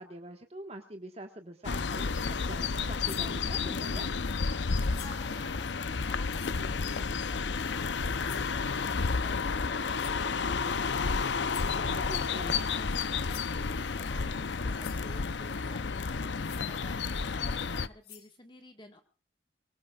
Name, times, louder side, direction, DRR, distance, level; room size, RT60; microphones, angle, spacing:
voice 1, 0.0-4.1 11.9-12.6, right 1 dB, 35° right, 4 dB, 1.5 m, -45 dB
sound 1, 1.6-17.9, left 5 dB, 75° left, 0.7 m, -31 dB
sound 2, 3.0-3.3 4.9-5.3 6.3-6.6 8.2-8.6 9.9-10.2 11.5-11.8 12.9-13.0 13.3-13.6 14.4-14.5 14.8-15.1 16.4-16.7 17.6-17.7 18.0-18.3, left 11 dB, 55° left, 2.5 m, -48 dB
voice 2, 4.6-19.0, left 2 dB, 25° left, 5 dB, 1.6 m, -51 dB
24.0 x 20.0 x 2.4 m, 0.36 s
head